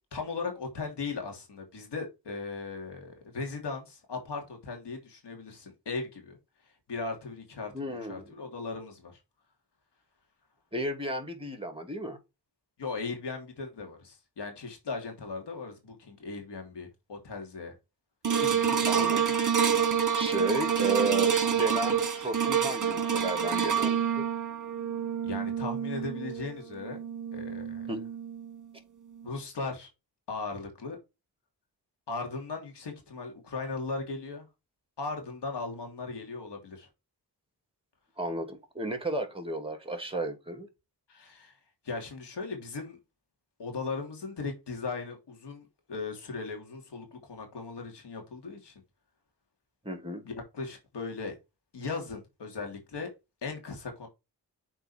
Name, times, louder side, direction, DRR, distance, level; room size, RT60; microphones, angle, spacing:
voice 1, 0.0-6.4 6.9-7.7 8.1-9.2 12.8-17.7 18.4-19.0 25.2-27.0 27.3-27.9 29.2-29.9 30.3-31.0 32.1-34.5 35.0-36.9 41.1-41.5 41.8-43.0 43.6-48.7 50.2-51.4 51.7-53.1 53.4-54.1, left 4 dB, 80° left, 3.2 m, -38 dB
voice 2, 7.7-8.3 10.7-12.2 18.9-19.4 20.1-24.3 27.9-28.1 38.2-40.7 49.8-50.2, right 2 dB, 15° right, 2.9 m, -33 dB
sound 1, 18.2-28.6 29.2-29.3, right 7 dB, 45° right, 1.7 m, -28 dB
7.8 x 4.6 x 4.5 m
cardioid pair, 60°, 41 cm